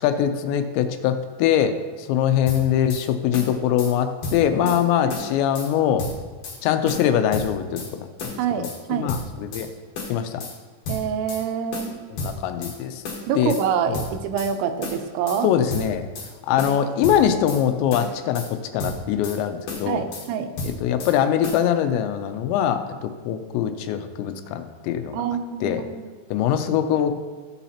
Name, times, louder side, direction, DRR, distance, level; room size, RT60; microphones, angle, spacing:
voice 1, 0.0-6.1 6.6-8.3 8.6-9.7 10.1-10.4 12.1-13.0 13.4-13.5 13.9-14.0 15.4-16.0 16.5-20.1 20.6-25.2 25.6-25.8 26.3-27.1, left 9 dB, 90° left, 8 dB, 2.9 m, -23 dB
sound 1, 2.5-3.1 3.3-3.9 4.2-4.8 5.1-5.7 6.0-6.6 6.9-7.9 8.2-8.8 9.1-9.7 10.0-10.6 10.9-11.4 11.7-12.8 13.0-13.7 13.9-14.5 14.8-15.4 15.7-16.3 16.6-17.6 17.9-18.5 18.8-19.4 19.7-20.3 20.6-21.2 21.4-21.7, left 2 dB, 60° left, 2.5 m, -32 dB
voice 2, 8.4-9.1 10.9-12.0 13.3-15.5 19.9-20.5 25.1-26.1, right 7 dB, 85° right, 7 dB, 3.0 m, -26 dB
15.0 x 7.1 x 2.8 m, 1.4 s
omnidirectional pair, 5.1 m